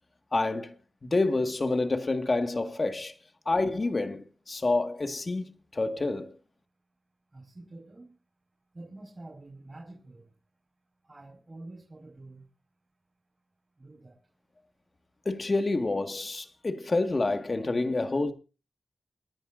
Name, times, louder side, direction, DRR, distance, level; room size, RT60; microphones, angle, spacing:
voice 1, 0.3-0.7 1.0-3.1 3.5-6.3 15.3-18.3, left 2 dB, 40° left, 1.7 m, -28 dB
voice 2, 7.3-8.2 8.7-10.2 11.1-12.5 13.8-14.2, right 2 dB, 35° right, 5.0 m, -47 dB
28.5 x 10.5 x 2.6 m
wide cardioid pair, 75°, 0 cm